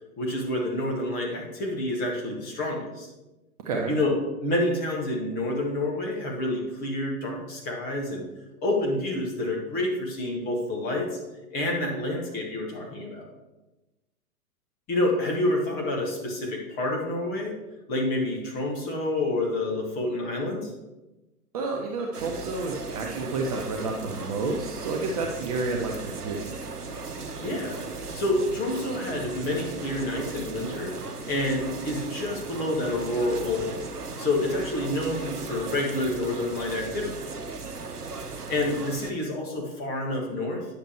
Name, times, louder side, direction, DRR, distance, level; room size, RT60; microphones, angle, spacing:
voice 1, 0.2-3.1 3.9-8.2 8.6-11.2 11.5-13.3 14.9-17.5 17.9-20.7 27.4-27.8 28.1-30.9 31.3-33.8 34.2-37.2 38.5-40.7, left 1 dB, 20° left, 0 dB, 1.5 m, -28 dB
voice 2, 3.6-3.9 21.5-26.5, right 3 dB, 25° right, 1 dB, 0.6 m, -30 dB
sound 1, 22.1-39.1, right 4 dB, 85° right, 0.9 m, -37 dB
9.4 x 6.5 x 3.0 m, 1.0 s
figure-of-eight pair, 120°, 45 cm